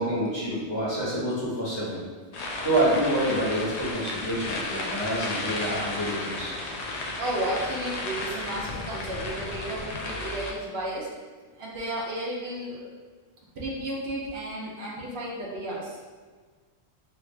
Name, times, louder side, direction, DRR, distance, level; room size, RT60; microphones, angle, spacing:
voice 1, 0.0-2.0 2.6-6.5, right 1 dB, 25° left, -9 dB, 0.8 m, -27 dB
sound 1, 2.3-10.5, left 2 dB, 55° left, 0.4 m, -33 dB
voice 2, 7.2-11.1 11.5-12.9 13.6-16.0, right 1 dB, 65° right, -4 dB, 0.9 m, -33 dB
3.3 x 2.4 x 3.1 m, 1.4 s
omnidirectional pair, 1.2 m